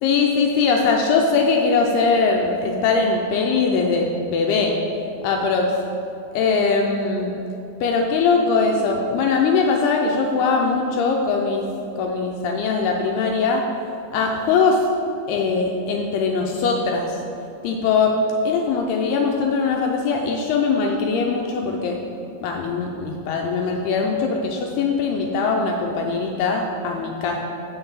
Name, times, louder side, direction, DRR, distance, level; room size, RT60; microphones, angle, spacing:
voice 1, 0.0-4.8 5.2-5.7 6.3-7.3 7.8-11.7 12.0-13.6 14.1-14.9 15.3-17.2 17.6-18.2 18.4-22.0 22.4-27.4, left 4 dB, 80° left, 1 dB, 2.3 m, -21 dB
6.7 x 5.8 x 7.2 m, 2.7 s
omnidirectional pair, 5.1 m